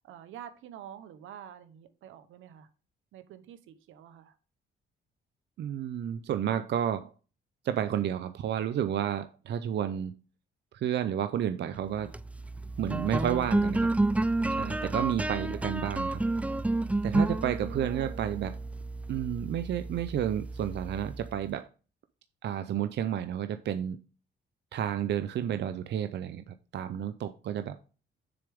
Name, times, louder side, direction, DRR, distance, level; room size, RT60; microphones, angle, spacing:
voice 1, 0.0-2.7 3.1-4.4 15.0-15.9 17.7-18.3, right 10 dB, 85° right, 1.1 m, -48 dB
voice 2, 5.6-7.1 7.6-10.1 10.7-12.1 12.8-13.9 14.5-16.2 17.0-18.6 19.1-21.7 22.4-24.0 24.7-27.8, right 10 dB, 60° right, 0.6 m, -31 dB
sound 1, 11.9-21.5, right 2 dB, 5° right, 0.4 m, -31 dB
7.0 x 6.7 x 3.6 m
cardioid pair, 90°, 20 cm